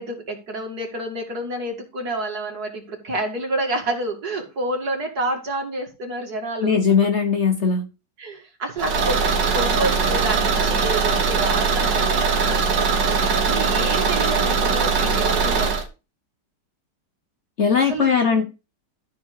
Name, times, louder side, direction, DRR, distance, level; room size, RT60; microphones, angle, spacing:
voice 1, 0.0-6.8 8.2-9.3 9.5-12.6 13.2-15.7 17.9-18.4, right 1 dB, 60° right, 2.8 m, -29 dB
voice 2, 6.6-7.9 17.6-18.4, left 6 dB, 45° left, 1.1 m, -19 dB
Car / Engine, 8.8-15.9, right 5 dB, 75° right, 2.0 m, -21 dB
13.0 x 4.6 x 4.7 m
omnidirectional pair, 1.9 m